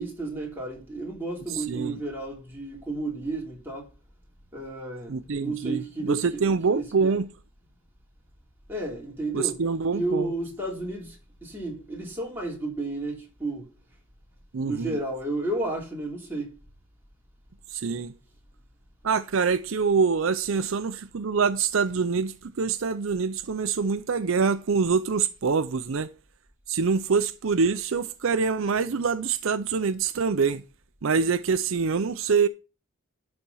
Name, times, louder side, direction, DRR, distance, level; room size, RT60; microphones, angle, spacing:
voice 1, 0.0-3.9 4.5-7.2 8.7-9.6 9.9-13.7 14.6-16.6 20.6-20.7, right 2 dB, 10° right, 3.0 m, -32 dB
voice 2, 1.5-2.0 5.1-7.3 9.3-10.3 14.5-15.0 17.7-18.1 19.0-26.1 26.7-30.6 31.0-32.5, right 5 dB, 65° right, 0.5 m, -25 dB
11.5 x 4.4 x 5.4 m
head